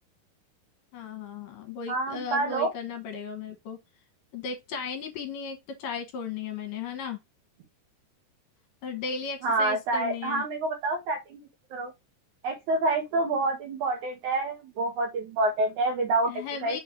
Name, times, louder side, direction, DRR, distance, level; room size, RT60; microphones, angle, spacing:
voice 1, 0.9-3.8 4.3-7.2 8.8-10.4 16.3-16.8, left 5 dB, 70° left, 2.6 m, -36 dB
voice 2, 1.9-2.7 9.4-11.4 11.7-11.9 12.4-16.8, right 2 dB, 65° right, 2.3 m, -27 dB
6.4 x 3.3 x 4.4 m
omnidirectional pair, 4.4 m